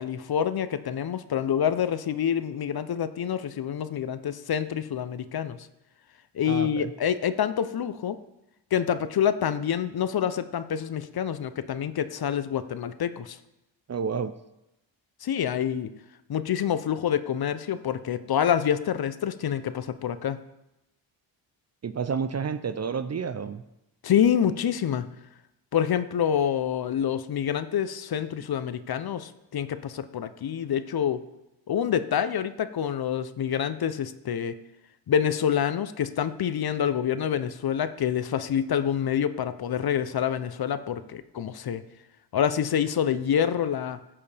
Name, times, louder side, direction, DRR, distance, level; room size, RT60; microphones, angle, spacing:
voice 1, 0.0-5.6 6.3-8.2 8.7-13.4 15.2-15.9 16.3-20.4 24.0-25.1 25.7-31.2 31.7-34.6 35.1-41.8 42.3-44.0, left 9 dB, 50° left, 12 dB, 0.6 m, -27 dB
voice 2, 6.5-6.9 13.9-14.3 21.8-23.6, right 6 dB, 35° right, 12 dB, 0.5 m, -30 dB
14.0 x 6.9 x 3.4 m, 0.90 s
cardioid pair, 85°, 47 cm